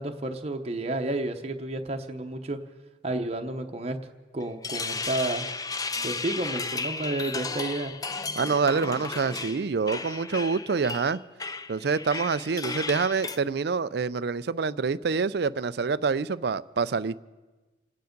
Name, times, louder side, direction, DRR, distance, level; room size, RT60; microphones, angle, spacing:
voice 1, 0.0-2.6 3.0-4.0 4.3-5.5 6.0-7.9, right 2 dB, 35° right, 4 dB, 0.9 m, -31 dB
sound 1, 4.4-13.4, left 4 dB, 20° left, 0.4 m, -34 dB
voice 2, 8.4-11.2 11.7-17.1, right 5 dB, 55° right, 17 dB, 0.4 m, -26 dB
28.0 x 9.4 x 5.2 m, 1.2 s
head